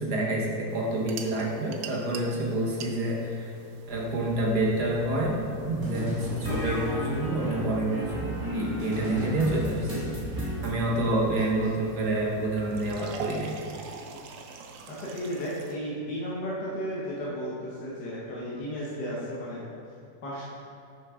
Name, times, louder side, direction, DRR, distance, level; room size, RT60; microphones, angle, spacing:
voice 1, 0.0-3.5 3.9-13.5, right 1 dB, 60° right, -2 dB, 1.9 m, -28 dB
sound 1, 0.7-15.8, right 5 dB, 80° right, 1.4 m, -46 dB
sound 2, 3.9-13.0, left 2 dB, 45° left, 2.8 m, -47 dB
sound 3, 5.8-10.7, left 1 dB, 10° right, 1.7 m, -33 dB
voice 2, 10.9-11.3 14.9-19.7 20.2-20.4, equal, 65° left, -6 dB, 2.0 m, -34 dB
10.5 x 6.3 x 3.7 m, 2.6 s
omnidirectional pair, 2.0 m